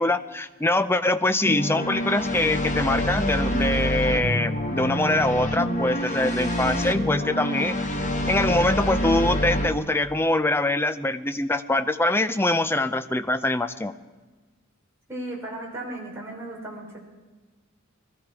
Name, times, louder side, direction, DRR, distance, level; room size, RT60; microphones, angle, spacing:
voice 1, 0.0-7.8 8.3-13.9, left 2 dB, 10° left, 10 dB, 0.5 m, -24 dB
sound 1, 1.4-9.7, equal, 35° left, 1.5 m, -26 dB
voice 2, 15.1-17.0, right 1 dB, 10° right, -3 dB, 3.6 m, -35 dB
21.5 x 13.5 x 4.8 m, 1.3 s
head